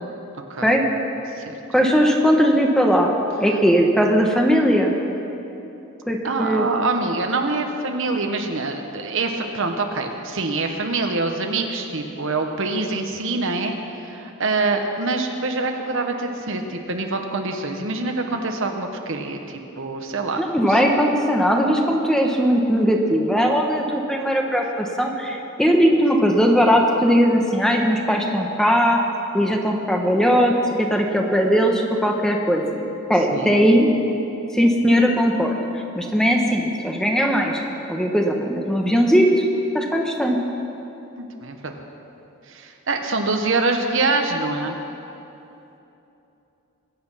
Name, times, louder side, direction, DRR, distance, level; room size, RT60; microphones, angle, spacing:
voice 1, 1.7-3.1 3.4-4.9 6.1-6.7 20.4-29.0 29.3-32.8 33.1-33.9 34.5-35.6 35.9-37.6 37.9-39.4 39.7-40.4, equal, 5° left, 1 dB, 1.1 m, -19 dB
voice 2, 6.2-20.4 20.7-20.8 33.3-33.6 41.2-41.7 42.5-44.8, right 3 dB, 65° right, 4 dB, 1.2 m, -25 dB
22.0 x 8.7 x 5.7 m, 3.0 s
head